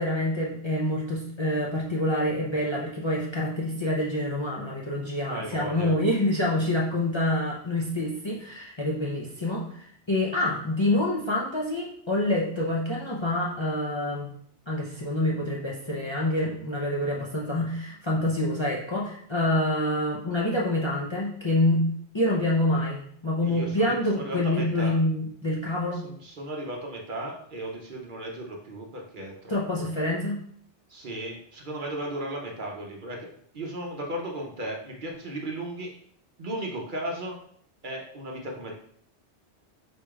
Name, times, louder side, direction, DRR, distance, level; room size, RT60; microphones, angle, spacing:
voice 1, 0.0-14.3 14.7-21.9 22.1-26.1 29.5-30.4, left 1 dB, 30° left, -3 dB, 0.5 m, -27 dB
voice 2, 5.2-6.0 22.7-22.8 23.4-24.9 25.9-29.9 30.9-33.3 33.5-36.0 36.4-37.4 37.8-38.7, right 1 dB, 50° right, 0 dB, 0.8 m, -35 dB
4.8 x 4.4 x 2.4 m, 0.63 s
omnidirectional pair, 1.2 m